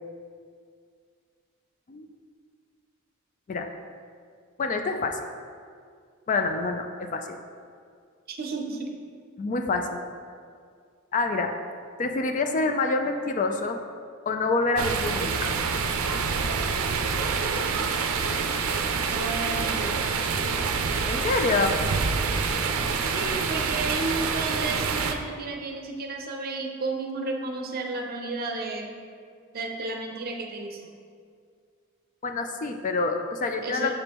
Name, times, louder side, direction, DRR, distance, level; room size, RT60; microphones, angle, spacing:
voice 1, 4.6-5.2 6.3-7.4 9.4-10.0 11.1-11.5 12.0-13.8 14.3-15.6 21.1-21.8 32.2-33.9, left 3 dB, 40° left, 5 dB, 0.4 m, -26 dB
voice 2, 8.3-8.9 19.1-20.1 23.1-28.9 29.5-30.8 33.6-33.9, right 3 dB, 45° right, 3 dB, 0.6 m, -32 dB
sound 1, 14.8-25.1, right 5 dB, 90° right, 0.5 m, -27 dB
6.8 x 5.3 x 2.9 m, 2.2 s
head